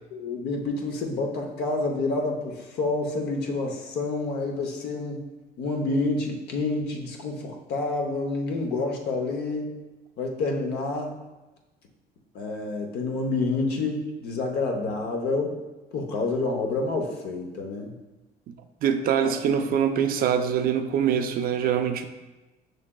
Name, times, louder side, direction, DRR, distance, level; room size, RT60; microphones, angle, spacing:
voice 1, 0.1-5.2 5.6-9.8 10.2-11.2 12.3-15.6 15.9-17.9 19.2-19.3, left 3 dB, 75° left, 2 dB, 0.7 m, -28 dB
voice 2, 18.8-22.1, right 8 dB, 60° right, 8 dB, 0.4 m, -24 dB
5.9 x 3.3 x 2.2 m, 1.1 s
cardioid pair, 110°, 17 cm